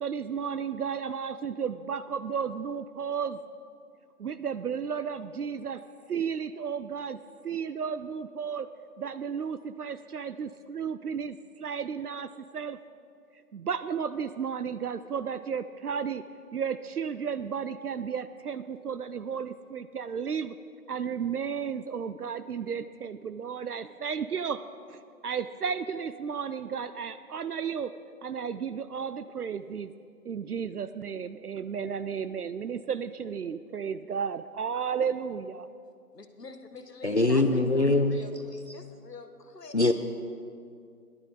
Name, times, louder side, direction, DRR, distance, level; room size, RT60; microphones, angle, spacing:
voice 1, 0.0-3.4 4.2-5.8 6.1-7.2 7.4-8.7 9.0-12.8 13.5-16.2 16.5-20.6 20.9-24.6 24.9-27.9 28.2-29.9 30.2-35.7, right 7 dB, 70° right, 13 dB, 0.6 m, -33 dB
voice 2, 36.1-39.8, left 4 dB, 85° left, 7 dB, 1.4 m, -46 dB
voice 3, 37.0-38.2 39.7-39.9, left 2 dB, 50° left, 7 dB, 0.5 m, -22 dB
17.0 x 12.0 x 4.0 m, 2.3 s
figure-of-eight pair, 170°, 47 cm